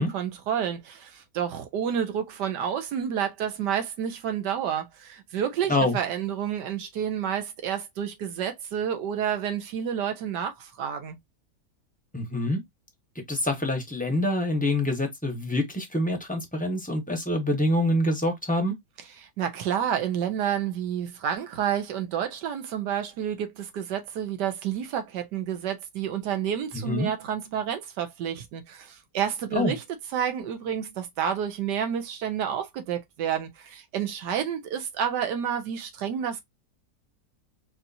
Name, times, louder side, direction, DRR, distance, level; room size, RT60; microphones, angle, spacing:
voice 1, 0.0-11.2 19.4-29.8 30.1-36.4, right 9 dB, 75° right, 1.4 m, -29 dB
voice 2, 12.1-12.6 13.1-18.7 26.7-27.1 29.5-29.7, left 1 dB, 5° left, 0.7 m, -26 dB
4.4 x 2.6 x 2.6 m
omnidirectional pair, 1.8 m